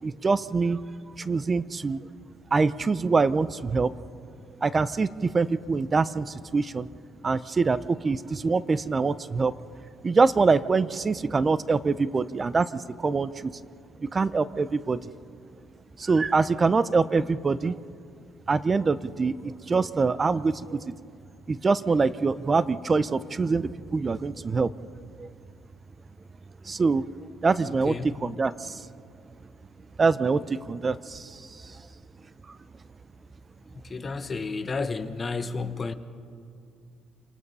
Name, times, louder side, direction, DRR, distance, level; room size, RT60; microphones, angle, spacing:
voice 1, 0.0-0.8 1.2-2.0 2.5-3.9 4.6-6.9 7.2-9.5 10.0-13.5 14.0-15.0 16.0-17.8 18.5-20.8 21.5-24.7 25.2-25.3 26.6-27.0 27.4-28.9 30.0-31.8 32.5-32.6, right 4 dB, 30° right, 0.6 m, -24 dB
voice 2, 27.6-28.1 33.8-35.9, left 4 dB, 35° left, 1.2 m, -31 dB
28.0 x 19.0 x 5.5 m
cardioid pair, 85°, 0 cm